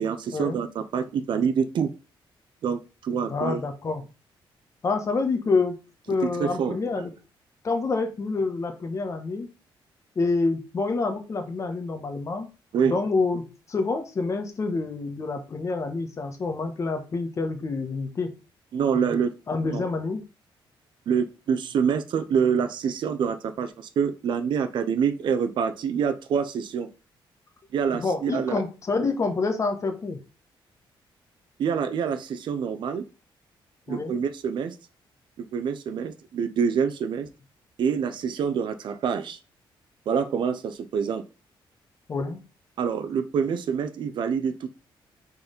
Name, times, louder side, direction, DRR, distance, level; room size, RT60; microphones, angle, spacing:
voice 1, 0.0-1.9 2.6-3.6 6.2-7.0 12.7-13.0 18.7-19.3 19.7-19.8 21.1-26.9 27.7-28.6 31.6-33.0 33.9-34.8 35.5-37.3 37.8-39.4 40.1-41.2 42.8-44.7, right 7 dB, 60° right, 8 dB, 0.6 m, -26 dB
voice 2, 3.3-4.0 4.8-5.7 6.1-7.1 7.6-9.5 10.1-12.5 12.9-18.3 18.9-19.2 19.5-20.2 27.9-30.2 33.9-34.2 42.1-42.4, left 3 dB, 35° left, 6 dB, 1.1 m, -27 dB
4.7 x 4.0 x 5.1 m, 0.32 s
wide cardioid pair, 150°, 9 cm